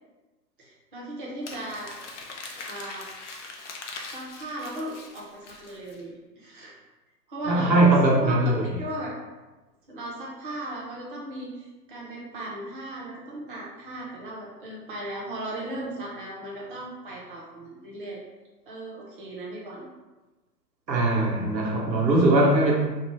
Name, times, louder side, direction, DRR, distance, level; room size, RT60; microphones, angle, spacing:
voice 1, 0.6-1.9 2.7-3.1 4.1-6.7 7.3-7.8 8.2-8.3 8.8-9.1 9.9-18.2 18.7-19.9, right 1 dB, 35° right, -5 dB, 0.4 m, -37 dB
Crumpling crinkling, 1.4-6.0, left 3 dB, 50° left, 0.4 m, -41 dB
voice 2, 7.5-8.7 20.9-22.7, right 2 dB, 85° right, -2 dB, 0.8 m, -20 dB
2.5 x 2.0 x 3.0 m, 1.2 s
figure-of-eight pair, 130°, 50 cm